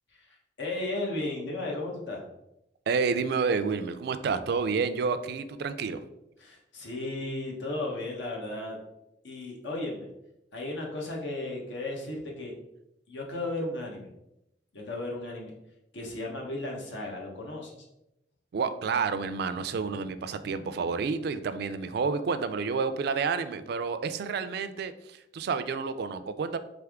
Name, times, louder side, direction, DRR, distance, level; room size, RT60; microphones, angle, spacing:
voice 1, 0.1-2.2 6.4-8.8 9.2-10.1 10.5-12.5 13.1-14.1 14.7-15.5 15.9-17.7, left 2 dB, 85° left, -2 dB, 1.0 m, -35 dB
voice 2, 2.9-6.0 18.5-26.6, right 5 dB, 60° right, 11 dB, 0.3 m, -29 dB
3.7 x 3.4 x 3.5 m, 0.87 s
head